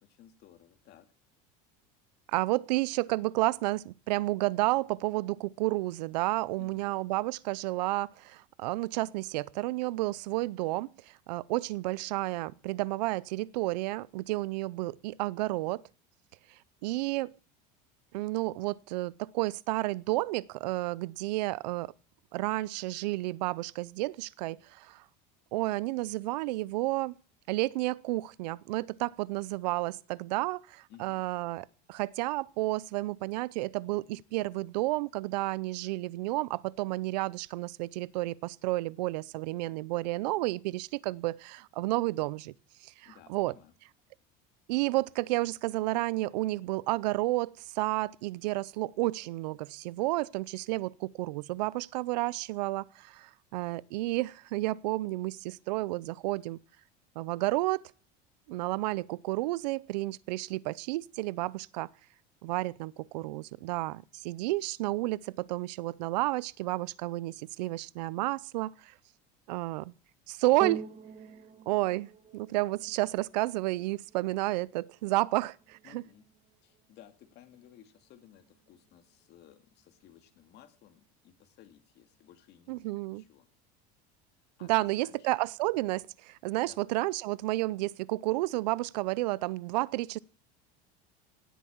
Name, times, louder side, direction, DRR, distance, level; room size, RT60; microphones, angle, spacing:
voice 1, 0.0-1.1 6.6-6.9 30.9-31.2 43.0-43.7 75.8-76.3 76.6-83.5 84.6-85.3 86.6-86.8, left 10 dB, 55° left, 2.2 m, -57 dB
voice 2, 2.3-15.8 16.8-17.3 18.1-21.9 22.3-25.0 25.5-27.1 27.5-42.5 42.8-43.5 44.7-56.6 57.2-57.9 58.5-61.9 62.4-68.9 69.5-69.9 70.3-70.9 71.7-76.0 82.7-83.2 84.6-90.2, right 19 dB, 85° right, 0.6 m, -31 dB
sound 1, 70.6-79.2 79.9-80.0, right 7 dB, 35° right, 2.4 m, -45 dB
17.5 x 8.2 x 7.2 m
supercardioid pair, 105°, 21 cm